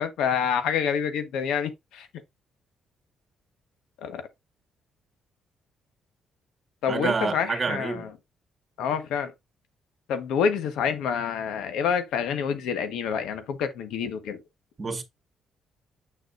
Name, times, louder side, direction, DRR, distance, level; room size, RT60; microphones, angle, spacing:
voice 1, 0.0-2.1 4.0-4.2 6.8-8.1 8.8-9.3 10.1-14.4, left 7 dB, 85° left, 1.3 m, -27 dB
voice 2, 6.9-8.1 14.8-15.0, right 4 dB, 35° right, 1.7 m, -28 dB
6.7 x 6.6 x 2.6 m
cardioid pair, 90°, 0 cm